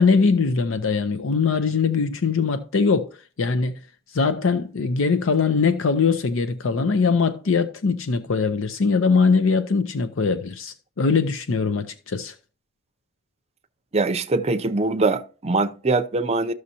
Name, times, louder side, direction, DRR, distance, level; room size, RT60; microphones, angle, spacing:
voice 1, 0.0-3.1 3.4-3.8 4.1-12.3, left 4 dB, 70° left, 0.6 m, -21 dB
voice 2, 13.9-16.5, right 3 dB, 30° right, 0.6 m, -22 dB
13.5 x 6.3 x 2.8 m
head